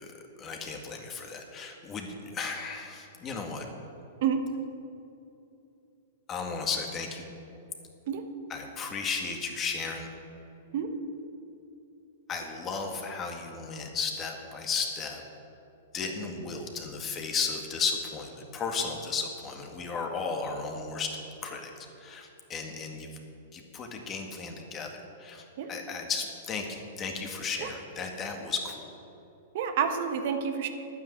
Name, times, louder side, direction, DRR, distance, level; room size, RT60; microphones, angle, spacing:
voice 1, 0.0-3.7 6.3-7.3 8.5-10.1 12.3-15.2 15.9-21.1 21.4-21.7 22.0-23.1 23.5-28.9, left 5 dB, 25° left, 3 dB, 2.0 m, -34 dB
voice 2, 29.5-30.7, right 7 dB, 60° right, 7 dB, 1.2 m, -28 dB
11.0 x 9.4 x 7.9 m, 2.8 s
hypercardioid pair, 125°, 0 cm